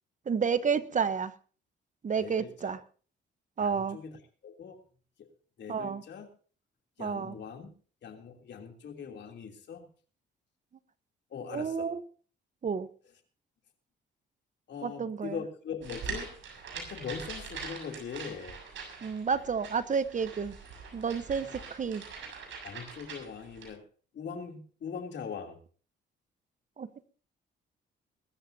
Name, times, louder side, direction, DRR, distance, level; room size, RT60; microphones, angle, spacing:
voice 1, 0.3-1.3 2.0-2.8 3.6-4.0 5.7-6.0 7.0-7.3 11.5-12.0 12.6-12.9 14.8-15.4 19.0-20.5 20.9-22.0 26.8-27.1, right 6 dB, 40° right, 14 dB, 1.0 m, -30 dB
voice 2, 2.2-2.7 3.6-4.2 4.4-4.8 5.2-5.3 5.6-6.3 7.0-7.7 8.0-9.9 11.3-11.9 14.7-16.3 16.7-18.6 21.4-21.6 22.6-23.8 24.1-25.6, left 6 dB, 60° left, 4 dB, 3.2 m, -41 dB
sound 1, 15.8-23.7, right 5 dB, 70° right, 6.8 m, -43 dB
22.5 x 13.5 x 2.8 m, 0.40 s
cardioid pair, 90°, 20 cm